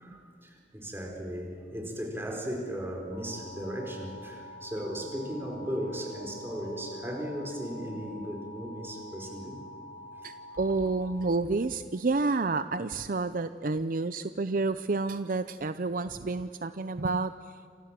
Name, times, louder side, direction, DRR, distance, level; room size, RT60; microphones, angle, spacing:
voice 1, 0.0-9.6 10.2-10.3, equal, 15° right, 2 dB, 4.6 m, -36 dB
sound 1, 3.1-11.1, left 1 dB, 65° left, 4.9 m, -47 dB
voice 2, 10.2-17.6, right 3 dB, 50° right, 12 dB, 0.6 m, -30 dB
29.5 x 26.5 x 7.6 m, 2.3 s
head